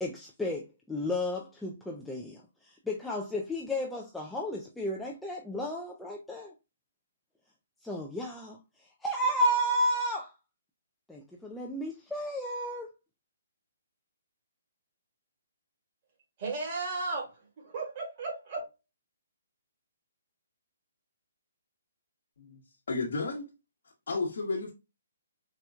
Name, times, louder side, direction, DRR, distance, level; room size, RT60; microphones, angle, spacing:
voice 1, 0.0-6.5 7.8-8.6 9.0-10.3 11.1-12.9, equal, 5° left, 0.4 m, -32 dB
voice 2, 16.4-18.6, right 3 dB, 35° right, 1.5 m, -35 dB
voice 3, 22.9-23.5 24.1-24.7, left 3 dB, 70° left, 1.0 m, -32 dB
4.2 x 2.2 x 2.4 m
hypercardioid pair, 155°, 0 cm